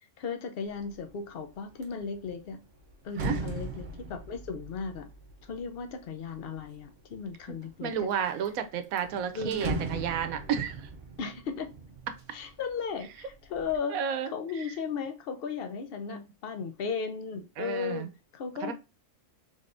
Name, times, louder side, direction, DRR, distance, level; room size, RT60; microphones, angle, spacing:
voice 1, 0.2-2.7 3.0-5.1 5.4-8.1 9.3-9.9 11.2-11.7 12.3-14.0 14.3-18.1 18.3-18.7, left 5 dB, 60° left, 0.6 m, -36 dB
sound 1, 0.7-1.1 1.5-6.8 7.4-8.1 8.5-8.6 8.8-12.8 13.1-13.8, right 2 dB, 55° right, 0.5 m, -39 dB
voice 2, 7.8-10.9 13.9-14.3 16.1-16.2 17.6-18.1 18.6-18.7, right 8 dB, 85° right, 1.0 m, -31 dB
3.6 x 3.3 x 2.5 m
omnidirectional pair, 1.4 m